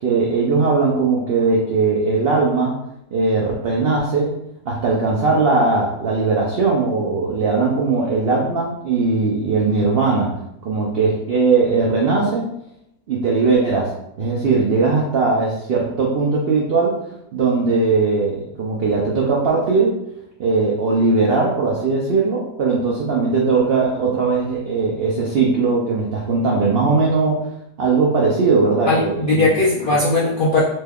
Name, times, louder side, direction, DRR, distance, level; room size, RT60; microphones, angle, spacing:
voice 1, 0.0-2.7 3.1-4.4 4.7-10.3 10.6-12.5 13.1-13.9 14.2-17.0 17.3-20.0 20.4-27.5 27.8-29.5, right 4 dB, 85° right, -3 dB, 0.5 m, -19 dB
voice 2, 28.9-30.6, left 2 dB, 85° left, -5 dB, 0.4 m, -18 dB
3.2 x 2.2 x 3.4 m, 0.79 s
omnidirectional pair, 1.7 m